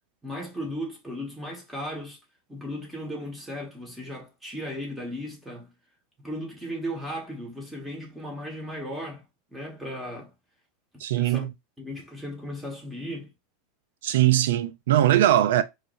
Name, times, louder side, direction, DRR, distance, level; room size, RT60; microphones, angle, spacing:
voice 1, 0.2-2.2 2.5-5.7 6.2-9.2 9.5-10.3 11.2-11.5 11.8-13.3, equal, 5° right, 1.4 m, -36 dB
voice 2, 11.0-11.5 14.0-15.6, right 13 dB, 75° right, 0.4 m, -21 dB
4.6 x 3.2 x 2.6 m
supercardioid pair, 160°, 0 cm